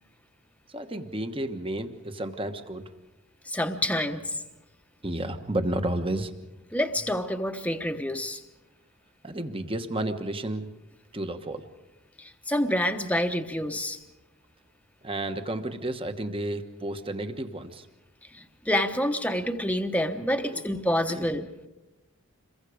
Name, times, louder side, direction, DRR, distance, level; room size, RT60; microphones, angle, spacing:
voice 1, 0.7-2.8 5.0-6.3 9.2-10.7 11.1-11.7 15.0-17.9 20.5-20.6 21.1-21.3, right 1 dB, 25° right, 8 dB, 1.2 m, -31 dB
voice 2, 3.4-4.4 6.7-8.4 12.2-14.0 18.3-21.5, left 1 dB, 5° left, 6 dB, 1.0 m, -28 dB
27.5 x 22.5 x 5.0 m, 1.0 s
head